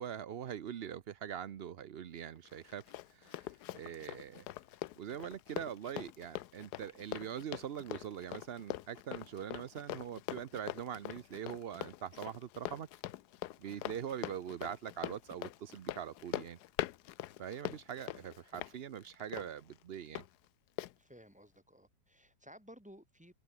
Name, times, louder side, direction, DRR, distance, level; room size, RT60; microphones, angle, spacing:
voice 1, 0.0-2.8 3.1-4.5 5.0-12.9 13.6-16.6 17.4-20.2, right 9 dB, 85° right, 0.5 m, -43 dB
Run, 2.5-20.3 20.8-20.9, left 15 dB, 70° left, 1.1 m, -43 dB
voice 2, 21.0-23.3, equal, 5° right, 4.9 m, -56 dB
omnidirectional pair, 2.0 m